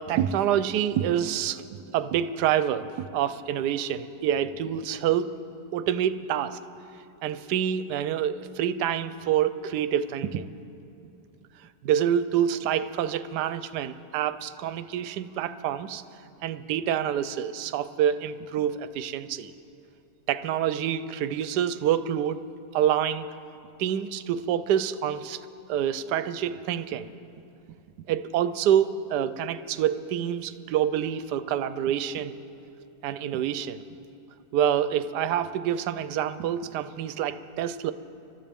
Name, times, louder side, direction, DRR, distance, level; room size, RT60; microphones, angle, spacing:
voice 1, 0.0-1.7 1.9-5.3 5.7-6.6 7.2-10.5 11.8-16.0 16.4-19.5 20.3-22.4 22.7-23.3 23.8-25.4 25.7-27.1 28.1-32.3 33.0-33.8 34.5-37.9, right 10 dB, 80° right, 13 dB, 1.1 m, -27 dB
28.5 x 13.0 x 3.5 m, 2.7 s
omnidirectional pair, 1.8 m